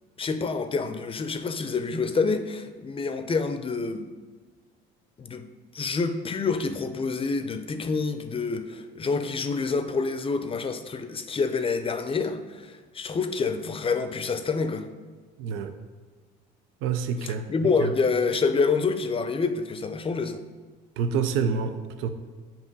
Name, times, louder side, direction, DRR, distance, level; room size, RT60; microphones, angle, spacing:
voice 1, 0.2-4.1 5.2-5.5 5.7-14.9 17.2-20.4, left 4 dB, 25° left, 9 dB, 0.5 m, -27 dB
voice 2, 15.4-15.7 16.8-17.4 21.0-22.1, right 6 dB, 80° right, 9 dB, 0.5 m, -27 dB
7.5 x 3.0 x 5.4 m, 1.5 s
supercardioid pair, 85°, 20 cm